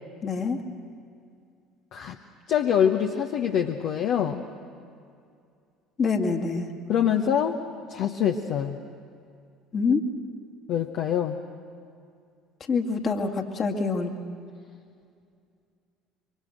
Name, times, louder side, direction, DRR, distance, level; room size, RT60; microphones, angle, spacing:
voice 1, 0.2-0.6 6.0-6.7 9.7-10.0 12.7-14.1, left 4 dB, 35° left, 4 dB, 2.0 m, -25 dB
voice 2, 2.5-4.4 6.9-7.6 7.9-8.8 10.7-11.4, left 8 dB, 55° left, 4 dB, 1.0 m, -24 dB
26.0 x 24.0 x 6.6 m, 2.4 s
figure-of-eight pair, 60°, 0 cm